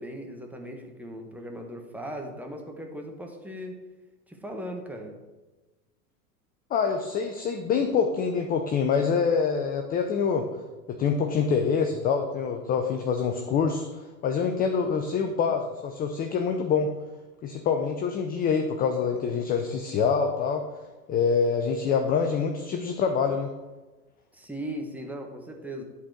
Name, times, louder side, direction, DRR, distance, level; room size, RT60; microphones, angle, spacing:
voice 1, 0.0-3.8 4.3-5.2 24.3-25.8, equal, 5° right, 2 dB, 1.2 m, -38 dB
voice 2, 6.7-10.5 10.9-16.9 17.4-20.6 21.1-23.5, left 6 dB, 20° left, 5 dB, 0.5 m, -26 dB
10.5 x 4.2 x 4.7 m, 1.2 s
hypercardioid pair, 95°, 46 cm